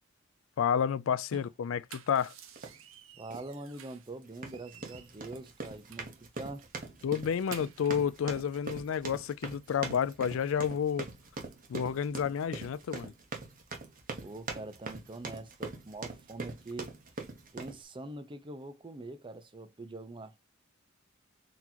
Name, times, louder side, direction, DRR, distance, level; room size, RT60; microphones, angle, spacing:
voice 1, 0.6-2.3 7.0-11.1 11.7-13.1, left 7 dB, 75° left, 0.4 m, -30 dB
sound 1, 1.6-4.1 4.5-6.2 6.6-6.7 7.0-8.1, right 9 dB, 85° right, 0.7 m, -52 dB
sound 2, 2.6-2.8 3.3-3.5 4.3-17.8, right 3 dB, 45° right, 0.9 m, -42 dB
voice 2, 3.2-6.7 14.2-16.9 17.5-20.4, right 2 dB, 25° right, 0.6 m, -44 dB
4.0 x 2.9 x 2.7 m
head